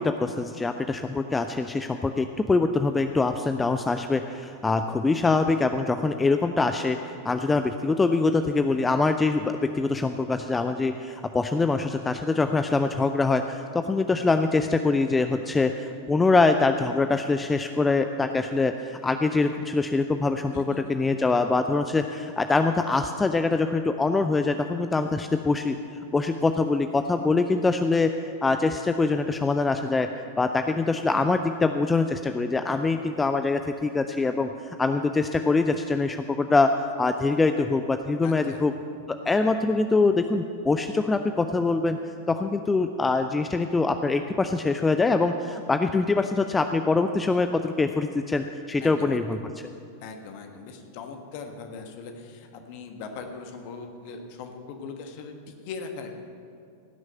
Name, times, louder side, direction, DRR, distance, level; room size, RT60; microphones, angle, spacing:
voice 1, 0.0-25.8 26.1-28.1 28.4-30.1 30.4-36.7 37.0-38.7 39.1-42.0 42.3-49.7, left 3 dB, 10° left, 8 dB, 0.4 m, -24 dB
voice 2, 20.5-21.2 38.2-38.7 48.8-49.4 50.0-56.2, left 4 dB, 45° left, 5 dB, 1.4 m, -40 dB
16.5 x 6.4 x 7.9 m, 2.5 s
figure-of-eight pair, 90°, 0 cm